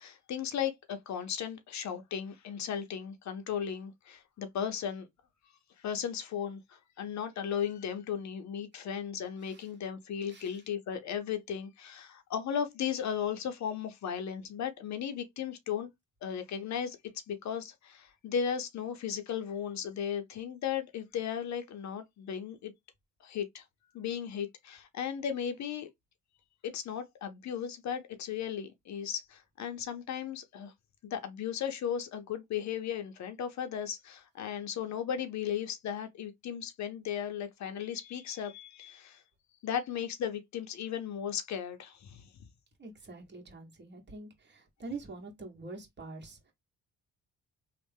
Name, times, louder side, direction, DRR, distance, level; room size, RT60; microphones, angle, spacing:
voice 1, 0.0-5.1 5.8-15.9 16.2-17.0 17.3-22.7 23.2-23.6 23.9-25.9 26.6-30.7 31.0-39.2 39.6-42.3, left 8 dB, 65° left, 0.8 m, -36 dB
voice 2, 42.8-46.5, right 3 dB, 35° right, 1.7 m, -45 dB
3.2 x 2.4 x 3.4 m
cardioid pair, 90°, 30 cm